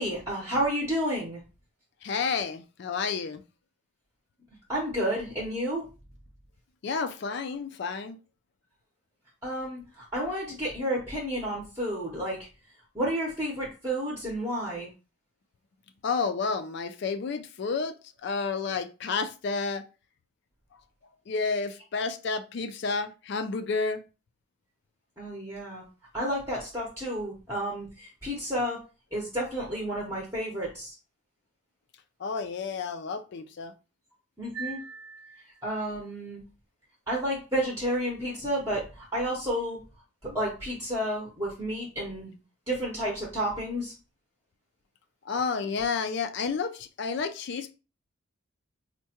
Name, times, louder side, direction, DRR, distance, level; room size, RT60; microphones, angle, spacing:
voice 1, 0.0-1.4 4.7-5.9 9.4-12.5 12.9-14.9 25.2-25.8 26.1-28.8 29.1-30.9 34.4-36.4 37.1-39.8 40.2-42.4 42.7-43.9, equal, 15° right, 0.7 m, -31 dB
voice 2, 2.0-3.4 6.8-8.2 16.0-17.9 18.2-19.8 21.3-24.0 32.2-33.7 45.3-47.7, left 4 dB, 50° left, 0.3 m, -30 dB
4.5 x 2.2 x 2.8 m
head